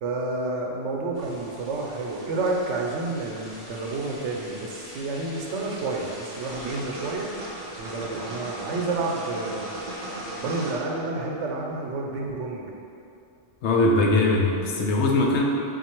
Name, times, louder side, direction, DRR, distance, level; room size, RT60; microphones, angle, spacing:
voice 1, 0.0-7.3 7.8-9.7 10.4-12.7, right 3 dB, 90° right, -1 dB, 0.9 m, -30 dB
sound 1, 1.1-10.8, equal, 55° left, 1.1 m, -43 dB
sound 2, 6.5-11.3, right 2 dB, 55° right, 0.5 m, -38 dB
voice 2, 13.6-15.4, left 2 dB, 75° left, 0 dB, 0.8 m, -21 dB
3.9 x 2.6 x 4.4 m, 2.6 s
omnidirectional pair, 1.2 m